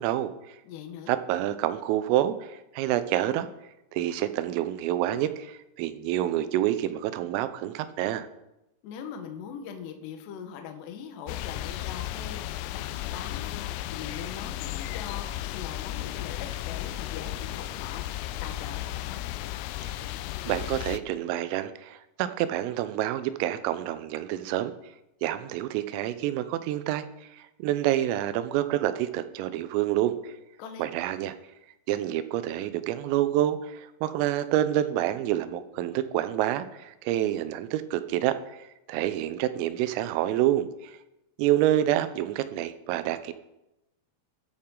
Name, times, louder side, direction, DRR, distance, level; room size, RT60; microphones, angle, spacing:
voice 1, 0.0-0.6 1.1-3.5 3.9-8.3 19.8-19.9 20.5-24.7 25.2-30.3 30.8-31.3 31.9-41.0 41.4-43.3, right 13 dB, 90° right, 12 dB, 3.4 m, -28 dB
voice 2, 0.6-1.1 8.8-18.1 18.4-19.2 30.6-30.9, left 7 dB, 70° left, 4 dB, 3.0 m, -41 dB
sound 1, 11.3-21.0, left 14 dB, 90° left, 3.3 m, -34 dB
21.5 x 8.8 x 3.8 m, 0.91 s
omnidirectional pair, 5.8 m